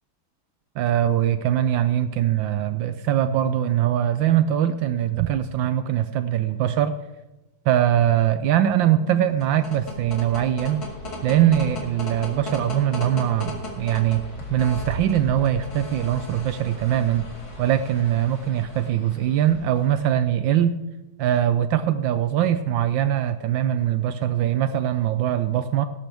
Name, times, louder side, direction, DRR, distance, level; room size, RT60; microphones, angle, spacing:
voice 1, 0.8-6.9 7.7-10.8 11.2-14.2 14.5-17.3 17.6-20.8 21.2-25.9, right 11 dB, 75° right, 11 dB, 1.2 m, -22 dB
sound 1, 9.3-20.0, left 1 dB, 50° left, 2.8 m, -36 dB
17.5 x 12.0 x 3.4 m, 1.1 s
omnidirectional pair, 2.2 m